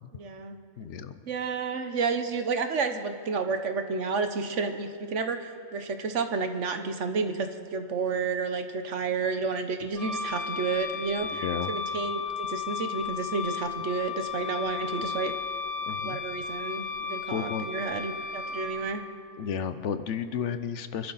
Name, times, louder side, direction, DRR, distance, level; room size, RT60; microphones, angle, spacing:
voice 1, 0.1-0.6 1.3-11.4 11.7-15.3 16.0-19.0, right 4 dB, 65° right, 7 dB, 1.3 m, -31 dB
voice 2, 0.8-1.2 11.3-11.7 15.9-16.2 17.3-17.7 19.4-21.1, left 7 dB, 65° left, 11 dB, 1.0 m, -32 dB
Wind instrument woodwind instrument, 9.9-18.7, left 6 dB, 5° left, 3.7 m, -34 dB
25.5 x 11.5 x 4.1 m, 2.4 s
omnidirectional pair, 1.4 m